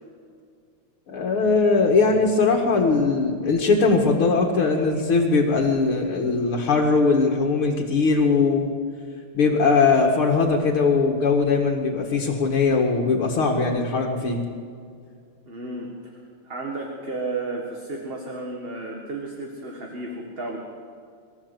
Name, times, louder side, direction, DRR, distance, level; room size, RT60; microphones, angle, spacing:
voice 1, 1.1-8.7 9.3-14.4, left 4 dB, 75° left, -1 dB, 2.7 m, -20 dB
voice 2, 15.5-20.6, right 2 dB, 25° right, 0 dB, 1.9 m, -33 dB
24.0 x 14.0 x 8.1 m, 2.3 s
omnidirectional pair, 2.4 m